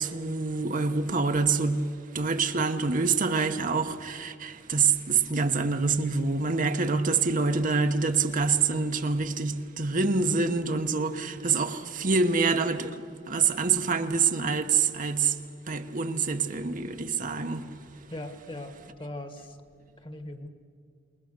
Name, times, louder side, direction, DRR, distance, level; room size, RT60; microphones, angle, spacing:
voice 1, 0.0-13.0 13.3-15.4 15.7-17.8, right 4 dB, 45° right, 1.0 m, -26 dB
voice 2, 18.1-19.6 20.0-20.5, left 1 dB, 30° left, 1.6 m, -39 dB
28.0 x 21.5 x 6.7 m
head